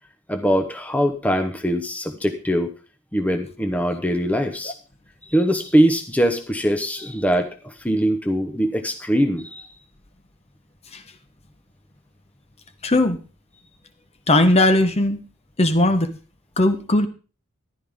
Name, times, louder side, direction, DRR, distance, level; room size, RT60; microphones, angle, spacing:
voice 1, 0.3-2.7 3.1-4.7 5.3-9.7, equal, 5° left, 7 dB, 1.0 m, -22 dB
voice 2, 12.8-13.2 14.3-15.2 15.6-16.1 16.6-17.1, left 1 dB, 30° left, 9 dB, 1.1 m, -18 dB
14.5 x 11.5 x 3.7 m, 0.35 s
head